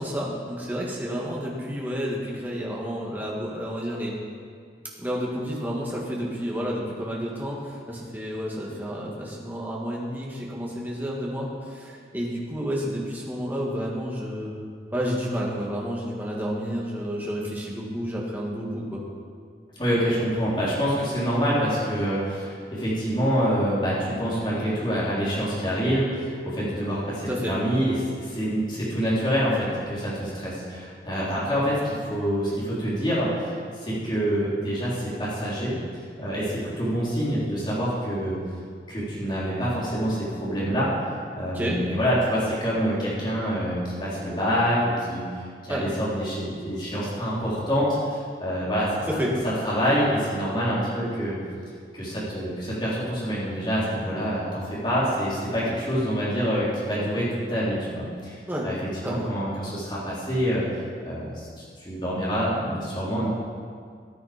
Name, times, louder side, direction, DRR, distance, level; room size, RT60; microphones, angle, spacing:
voice 1, 0.0-4.2 5.0-14.5 14.9-19.0 27.3-27.5 41.5-41.8 45.7-45.8 49.1-49.3 58.5-58.7 59.0-59.3, equal, 10° right, -4 dB, 1.9 m, -30 dB
voice 2, 19.8-33.5 33.8-35.8 36.2-38.4 38.9-40.9 41.4-45.3 45.7-49.1 49.6-51.4 51.9-58.4 58.6-58.8 59.0-60.6 61.0-61.5 61.8-63.3, equal, 25° left, -8 dB, 3.7 m, -26 dB
14.0 x 9.7 x 5.1 m, 2.1 s
head